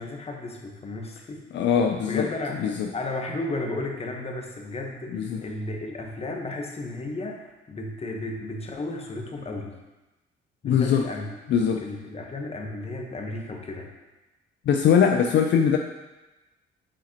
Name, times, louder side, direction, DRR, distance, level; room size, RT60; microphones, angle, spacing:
voice 1, 0.0-1.4 2.0-9.8 10.6-13.9, left 2 dB, 30° left, 2 dB, 1.0 m, -34 dB
voice 2, 1.5-2.3 2.6-2.9 5.1-5.4 10.6-11.1 11.5-11.8 14.7-15.8, left 7 dB, 65° left, 4 dB, 0.4 m, -21 dB
7.3 x 4.9 x 2.9 m, 1.1 s
cardioid pair, 90°, 20 cm